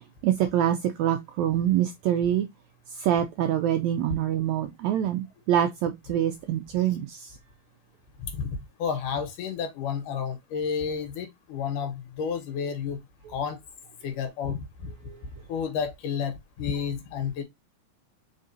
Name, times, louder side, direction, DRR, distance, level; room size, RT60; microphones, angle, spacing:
voice 1, 0.2-2.5 3.0-5.2 5.5-7.2, right 11 dB, 85° right, 1.6 m, -25 dB
voice 2, 8.2-8.5 8.8-13.0 13.3-13.6 14.0-14.9 15.5-17.4, left 6 dB, 80° left, 2.7 m, -31 dB
5.1 x 3.7 x 2.6 m
omnidirectional pair, 3.7 m